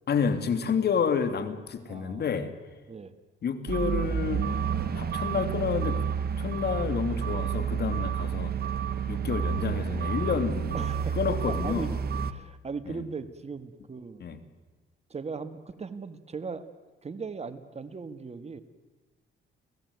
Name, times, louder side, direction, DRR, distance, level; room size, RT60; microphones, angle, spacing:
voice 1, 0.1-2.5 3.4-4.5 4.9-6.1 6.4-8.5 9.1-10.9 11.2-12.0 12.9-13.0 14.2-14.4, left 6 dB, 55° left, 10 dB, 2.6 m, -29 dB
voice 2, 1.9-2.3 2.9-3.1 9.3-9.4 10.7-11.2 11.5-11.9 12.2-14.2 15.1-16.6 17.0-18.6, right 4 dB, 30° right, 11 dB, 1.8 m, -38 dB
sound 1, 3.7-12.3, right 7 dB, 50° right, 1.1 m, -30 dB
30.0 x 17.0 x 9.6 m, 1.3 s
cardioid pair, 90°, 20 cm